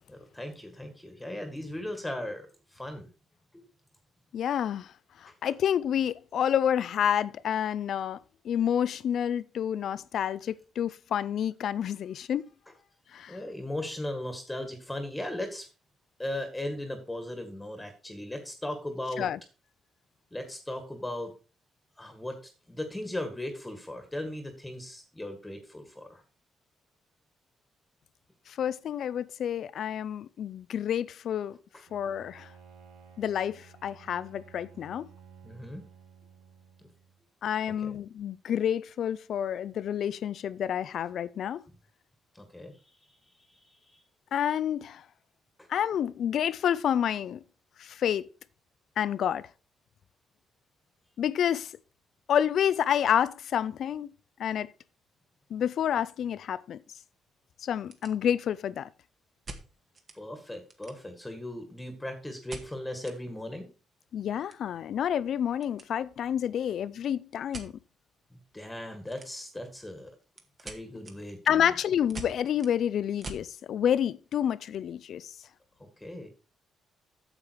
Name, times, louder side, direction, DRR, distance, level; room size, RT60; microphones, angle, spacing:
voice 1, 0.1-3.1 3.5-3.6 5.3-5.4 13.3-15.7 16.2-19.3 20.3-21.3 22.0-26.2 31.7-31.8 35.4-35.8 42.3-42.8 43.0-43.2 43.5-44.0 45.6-45.7 60.1-63.7 68.5-70.2 70.6-71.7 75.8-76.3, left 1 dB, 10° left, 1.8 m, -38 dB
voice 2, 4.3-4.9 5.2-12.5 13.1-13.4 19.2-19.4 28.5-31.6 31.9-32.5 33.2-35.1 37.4-41.6 44.3-45.0 45.7-47.4 47.8-48.2 49.0-49.5 51.2-51.7 52.3-54.1 54.4-54.7 55.5-56.8 57.6-58.9 64.1-67.7 71.5-75.3, left 9 dB, 65° left, 0.5 m, -29 dB
Bowed string instrument, 31.9-37.2, right 6 dB, 90° right, 1.7 m, -54 dB
sound 1, 55.4-55.6 56.0-56.1 56.7-56.8 57.0-57.1 57.6-58.6 59.4-60.2 60.5-61.3 62.5-63.2 63.5-63.6 63.9-65.9 66.2-66.5 67.5-67.7 69.0-69.6 70.0-73.5, right 3 dB, 40° right, 2.0 m, -45 dB
8.8 x 7.4 x 4.6 m
cardioid pair, 90°, 0 cm